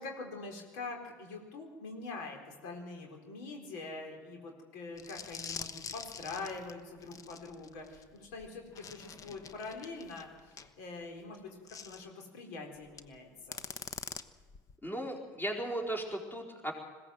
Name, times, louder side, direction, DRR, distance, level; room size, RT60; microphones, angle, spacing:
voice 1, 0.0-13.6, left 3 dB, 75° left, 2 dB, 4.2 m, -44 dB
sound 1, 5.0-10.7 11.7-12.0 12.9-13.1 13.5-14.8, left 6 dB, 35° left, 1.1 m, -45 dB
voice 2, 14.8-16.7, right 1 dB, 20° left, 1 dB, 4.3 m, -36 dB
21.0 x 16.5 x 7.8 m, 1.4 s
hypercardioid pair, 80°, 10 cm